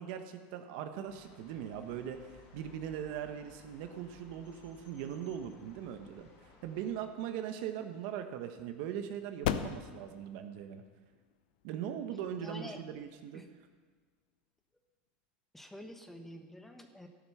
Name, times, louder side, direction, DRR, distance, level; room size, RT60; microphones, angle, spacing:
voice 1, 0.0-6.3 6.6-10.8 11.6-13.4, right 9 dB, 65° right, 7 dB, 1.3 m, -40 dB
sound 1, 1.1-7.0, left 4 dB, 60° left, 3.0 m, -59 dB
sound 2, 7.1-14.1, left 10 dB, 80° left, 0.7 m, -42 dB
voice 2, 12.4-12.8 13.3-13.5 15.5-17.1, equal, 5° left, 5 dB, 1.1 m, -48 dB
14.0 x 11.5 x 5.8 m, 1.5 s
supercardioid pair, 130°, 5 cm